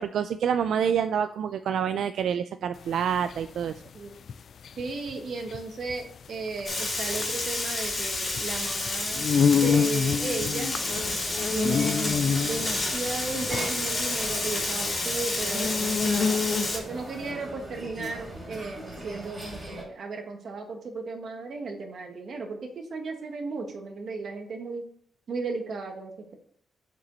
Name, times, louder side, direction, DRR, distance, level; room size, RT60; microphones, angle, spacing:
voice 1, 0.0-3.7, right 8 dB, 90° right, 9 dB, 0.3 m, -27 dB
sound 1, 2.8-17.0, left 6 dB, 55° left, 0.3 m, -28 dB
voice 2, 4.8-10.8 11.5-24.8 25.3-26.3, right 3 dB, 55° right, 3 dB, 1.5 m, -35 dB
Frying (food), 6.6-16.8, left 2 dB, 30° left, 2.5 m, -30 dB
sound 2, 10.7-19.8, right 1 dB, 20° right, 2.9 m, -40 dB
7.3 x 5.2 x 4.0 m, 0.62 s
wide cardioid pair, 155°, 0 cm